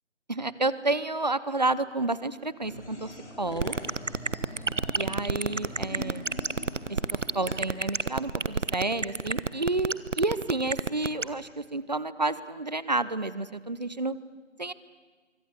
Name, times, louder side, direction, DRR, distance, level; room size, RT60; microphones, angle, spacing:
voice 1, 0.3-3.8 4.9-6.3 6.9-14.2 14.6-14.7, right 2 dB, 35° right, 16 dB, 0.8 m, -30 dB
sound 1, 2.6-7.6, left 1 dB, 65° left, 3.2 m, -43 dB
sound 2, 3.6-11.2, right 4 dB, 75° right, 1.2 m, -28 dB
25.0 x 24.5 x 8.1 m, 1.5 s
figure-of-eight pair, 165°, 37 cm